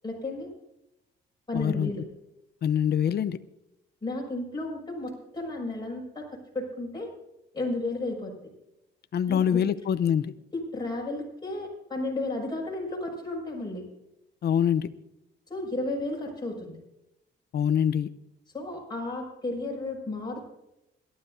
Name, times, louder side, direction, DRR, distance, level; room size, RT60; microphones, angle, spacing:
voice 1, 0.0-0.5 1.5-2.0 4.0-6.3 6.5-7.1 7.5-8.3 9.3-9.6 10.5-13.8 15.5-16.8 18.5-20.4, left 2 dB, 20° left, -3 dB, 6.0 m, -33 dB
voice 2, 1.5-1.9 2.6-3.4 9.1-10.3 14.4-14.9 17.5-18.1, left 8 dB, 55° left, 12 dB, 0.8 m, -24 dB
26.0 x 12.0 x 2.7 m, 0.90 s
cardioid pair, 90°, 20 cm